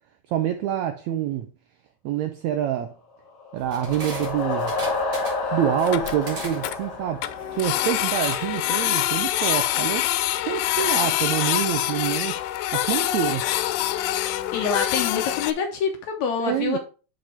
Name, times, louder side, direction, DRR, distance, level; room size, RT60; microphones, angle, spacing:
voice 1, 0.3-1.5 2.0-2.9 3.5-4.7 5.5-7.2 7.5-10.0 10.4-12.4 12.7-13.5 16.4-16.8, right 11 dB, 85° right, 1.6 m, -26 dB
sound 1, 3.3-8.2, left 3 dB, 50° left, 1.0 m, -29 dB
sound 2, 3.6-10.7, right 2 dB, 40° right, 2.5 m, -41 dB
Printer, 3.9-4.0 4.2-4.3 4.7-4.8 5.0-5.1 5.4-5.5 5.7-6.8 7.2-15.5, left 14 dB, 90° left, 2.2 m, -25 dB
voice 2, 14.5-16.8, left 6 dB, 70° left, 1.8 m, -26 dB
6.2 x 5.0 x 4.3 m
omnidirectional pair, 3.9 m